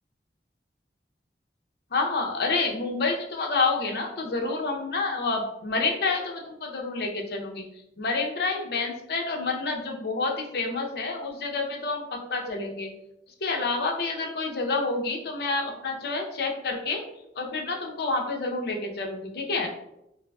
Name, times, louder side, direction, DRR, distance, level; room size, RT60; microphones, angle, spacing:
voice 1, 1.9-7.7 8.0-12.9 13.4-17.0 17.4-19.7, left 3 dB, 60° left, 2 dB, 0.6 m, -28 dB
4.8 x 2.0 x 2.2 m, 0.83 s
head